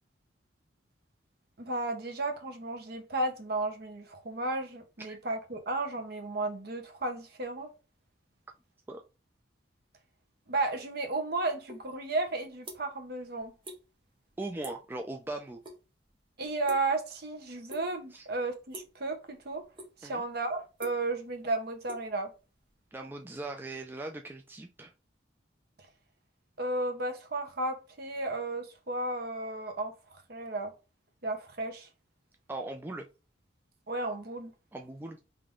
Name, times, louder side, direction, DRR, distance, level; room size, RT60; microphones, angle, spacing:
voice 1, 1.6-7.7 10.5-13.5 16.4-19.6 20.0-22.3 26.6-29.9 30.3-30.7 31.2-31.9 33.9-34.5, right 2 dB, 55° right, 0.9 m, -33 dB
sound 1, 11.7-11.9 12.2-13.1 13.4-13.8 14.1-14.3 14.6-14.9 15.3-15.8 16.0-17.2 17.7-18.1 18.7-19.0 19.5-20.2 20.5-22.7, right 1 dB, 25° right, 0.9 m, -47 dB
voice 2, 14.4-15.6 18.1-18.3 20.0-20.2 22.9-24.9 32.5-33.1 34.7-35.2, right 2 dB, 10° right, 0.3 m, -39 dB
3.5 x 3.3 x 3.7 m
head